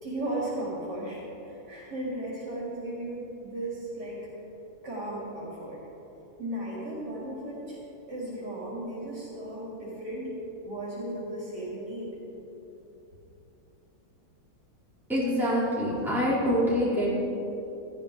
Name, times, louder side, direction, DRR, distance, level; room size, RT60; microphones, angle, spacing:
voice 1, 0.0-4.3 4.8-5.8 6.4-7.8 8.1-12.2, right 1 dB, 50° right, -6 dB, 3.9 m, -35 dB
voice 2, 15.1-17.1, equal, ahead, -8 dB, 3.5 m, -25 dB
16.5 x 13.5 x 4.0 m, 3.0 s
omnidirectional pair, 2.3 m